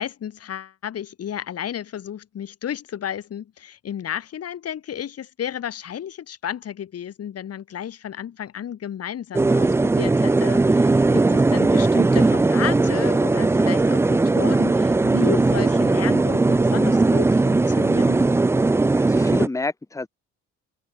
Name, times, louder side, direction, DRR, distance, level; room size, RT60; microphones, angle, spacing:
voice 1, 0.0-18.3, left 9 dB, 55° left, 1.5 m, -32 dB
sound 1, 9.3-19.5, right 3 dB, 10° right, 0.3 m, -18 dB
voice 2, 18.9-20.1, left 3 dB, 10° left, 1.1 m, -28 dB
cardioid pair, 90°, 30 cm